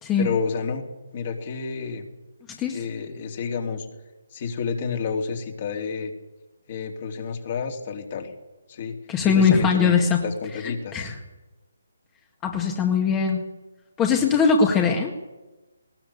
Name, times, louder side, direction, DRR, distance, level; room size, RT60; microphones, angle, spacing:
voice 1, 0.2-0.9 1.1-2.0 2.7-3.9 4.3-6.1 6.7-8.3 8.7-9.0 9.2-11.1, left 5 dB, 40° left, 3 dB, 3.2 m, -30 dB
voice 2, 2.5-2.8 9.1-10.2 10.6-11.2 12.4-13.5 14.0-15.2, left 5 dB, 15° left, 2 dB, 1.8 m, -21 dB
19.5 x 19.0 x 8.5 m, 1.1 s
figure-of-eight pair, 150°, 0 cm